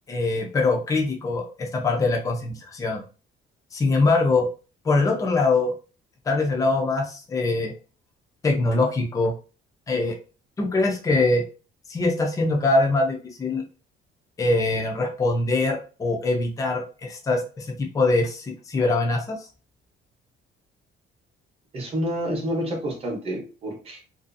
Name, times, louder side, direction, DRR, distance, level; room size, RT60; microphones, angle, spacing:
voice 1, 0.1-3.0 3.7-4.5 4.8-5.7 6.3-7.7 8.4-9.3 9.9-10.2 10.6-11.4 11.9-13.6 14.4-19.4, left 3 dB, 15° left, 1 dB, 0.4 m, -23 dB
voice 2, 21.7-24.0, equal, 30° right, 0 dB, 0.7 m, -29 dB
2.5 x 2.3 x 2.5 m, 0.35 s
cardioid pair, 180°, 21 cm